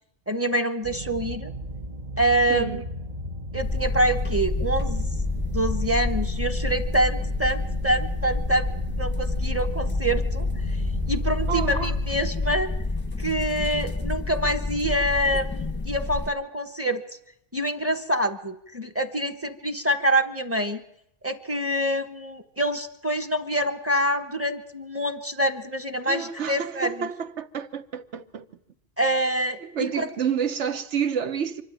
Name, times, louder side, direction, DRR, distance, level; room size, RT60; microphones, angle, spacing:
voice 1, 0.3-1.5 2.2-2.8 3.5-5.1 5.5-8.7 9.0-10.5 11.1-12.7 13.2-17.0 17.5-20.8 21.2-27.1 29.0-30.1, right 1 dB, 10° right, 1.2 m, -26 dB
sound 1, 0.8-12.1, equal, 35° right, 0.9 m, -35 dB
sound 2, 3.6-16.3, left 3 dB, 10° left, 0.9 m, -28 dB
voice 2, 11.5-11.9 26.1-28.5 29.6-31.6, right 7 dB, 70° right, 1.3 m, -29 dB
25.0 x 12.0 x 8.9 m
omnidirectional pair, 1.2 m